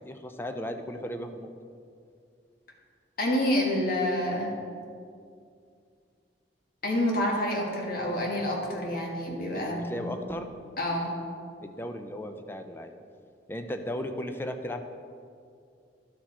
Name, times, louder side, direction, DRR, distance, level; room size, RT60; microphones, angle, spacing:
voice 1, 0.0-1.5 9.5-10.5 11.6-12.9 13.5-14.9, equal, 10° left, 6 dB, 0.4 m, -36 dB
voice 2, 3.2-4.5 6.8-10.1 10.8-11.1, left 1 dB, 55° left, -1 dB, 1.4 m, -28 dB
12.0 x 4.7 x 4.3 m, 2.3 s
head